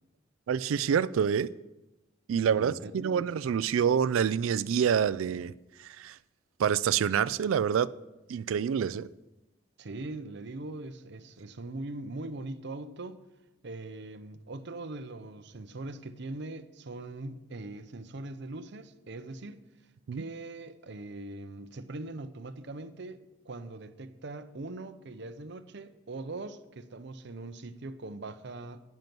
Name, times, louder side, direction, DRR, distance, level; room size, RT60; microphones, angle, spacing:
voice 1, 0.5-1.5 2.3-5.5 5.8-6.2 6.6-7.9 8.3-9.1 20.1-20.2, right 7 dB, 90° right, 0.3 m, -27 dB
voice 2, 2.5-3.2 9.8-13.2 13.6-19.6 20.1-28.8, right 2 dB, 60° right, 0.7 m, -41 dB
10.5 x 9.2 x 6.0 m
head